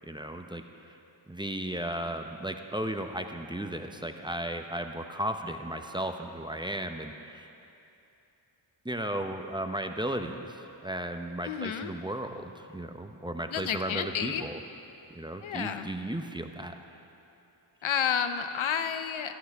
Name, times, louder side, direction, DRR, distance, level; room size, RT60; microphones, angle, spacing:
voice 1, 0.1-1.0 1.3-7.5 8.8-14.5 15.1-16.7, right 1 dB, 10° right, 5 dB, 0.7 m, -35 dB
voice 2, 11.4-11.9 13.5-14.4 15.4-15.9 17.8-19.4, left 8 dB, 80° left, 9 dB, 0.7 m, -30 dB
14.5 x 13.5 x 3.5 m, 2.8 s
cardioid pair, 65°, 47 cm